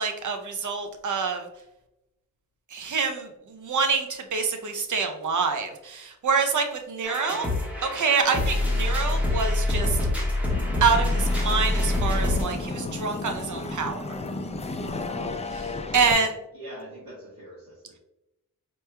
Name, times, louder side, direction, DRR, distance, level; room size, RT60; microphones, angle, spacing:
voice 1, 0.0-1.5 2.7-7.5 7.8-10.0 10.8-14.0 15.5-16.3, right 5 dB, 60° right, 5 dB, 0.6 m, -26 dB
sound 1, 7.0-12.4, left 2 dB, 5° right, 1.2 m, -25 dB
sound 2, 10.5-16.1, left 2 dB, 20° left, 0.3 m, -33 dB
voice 2, 15.9-17.9, right 1 dB, 85° right, -6 dB, 1.1 m, -43 dB
4.5 x 3.0 x 2.2 m, 0.90 s
wide cardioid pair, 80°, 34 cm